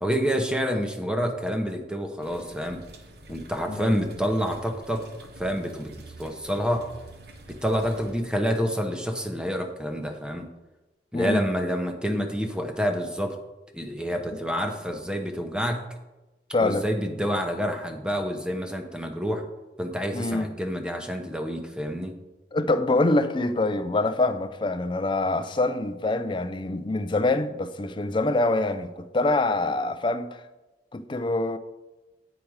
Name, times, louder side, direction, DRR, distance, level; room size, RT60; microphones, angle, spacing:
voice 1, 0.0-2.8 3.3-5.0 5.4-6.8 7.6-10.5 11.1-13.4 13.7-15.8 16.6-19.4 19.8-22.1, equal, 5° right, 0.8 m, -28 dB
sound 1, 2.2-8.1, right 1 dB, 60° right, 1.0 m, -46 dB
voice 2, 3.7-4.0 11.1-11.5 14.3-14.4 16.5-16.8 20.1-20.5 22.5-30.4 30.9-31.6, left 2 dB, 30° left, 0.4 m, -25 dB
8.7 x 5.0 x 4.7 m
head